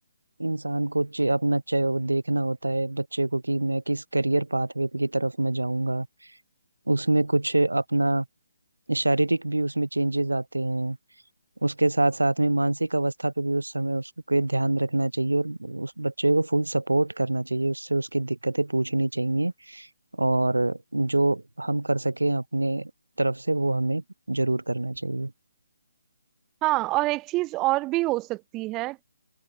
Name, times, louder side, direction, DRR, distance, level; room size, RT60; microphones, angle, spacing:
voice 1, 0.4-6.1 6.9-8.3 8.9-11.0 11.6-19.9 20.2-22.9 23.2-25.3, right 2 dB, 80° right, 3.7 m, -25 dB
voice 2, 26.6-29.0, right 20 dB, 20° right, 0.5 m, -26 dB
figure-of-eight pair, 140°, 0 cm